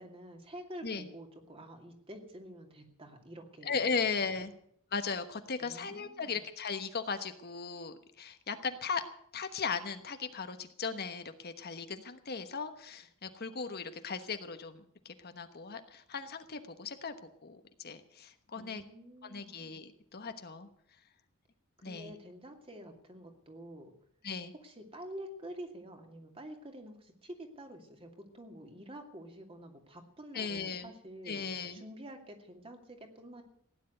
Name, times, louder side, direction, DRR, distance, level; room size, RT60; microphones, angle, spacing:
voice 1, 0.0-3.8 5.6-6.4 18.6-19.7 21.8-23.9 24.6-33.4, right 1 dB, 25° right, 4 dB, 2.5 m, -48 dB
voice 2, 3.6-4.5 4.9-9.0 9.3-17.1 17.4-18.8 19.2-20.7 21.8-22.1 24.2-24.5 30.3-30.9 31.3-31.8, left 5 dB, 45° left, 8 dB, 1.2 m, -37 dB
16.5 x 10.5 x 7.9 m, 0.66 s
head